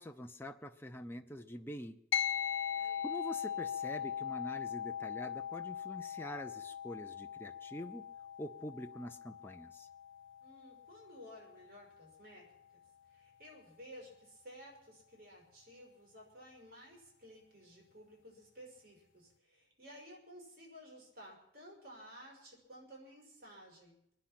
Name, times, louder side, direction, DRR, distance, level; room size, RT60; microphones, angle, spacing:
voice 1, 0.0-2.0 2.8-8.0 8.4-9.9, equal, 10° left, 5 dB, 0.6 m, -45 dB
sound 1, 2.1-11.8, left 9 dB, 75° left, 0.6 m, -40 dB
voice 2, 2.7-3.1 10.4-12.5 13.1-24.0, equal, 50° right, -1 dB, 5.9 m, -55 dB
24.0 x 10.0 x 5.9 m, 0.78 s
head